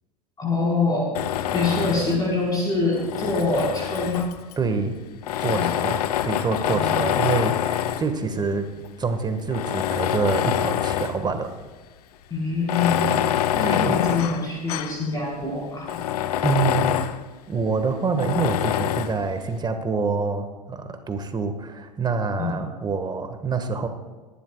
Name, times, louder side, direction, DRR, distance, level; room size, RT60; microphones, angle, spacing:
voice 1, 0.4-1.1 1.5-4.3 5.5-5.8 6.6-7.0 12.3-13.2 13.5-16.0 22.4-22.5, left 3 dB, 20° left, -5 dB, 4.7 m, -25 dB
Tools, 1.1-2.3 2.9-4.5 5.2-8.1 8.8-8.9 9.5-11.3 11.6-11.7 12.6-15.0 15.4-15.5 15.8-17.2 18.2-19.2, left 11 dB, 65° left, 0.7 m, -25 dB
voice 2, 4.6-4.9 5.4-8.7 9.0-11.5 13.8-14.0 16.4-17.0 17.5-23.9, right 4 dB, 20° right, 7 dB, 1.7 m, -26 dB
24.5 x 11.5 x 2.4 m, 1.3 s
figure-of-eight pair, 85°, 21 cm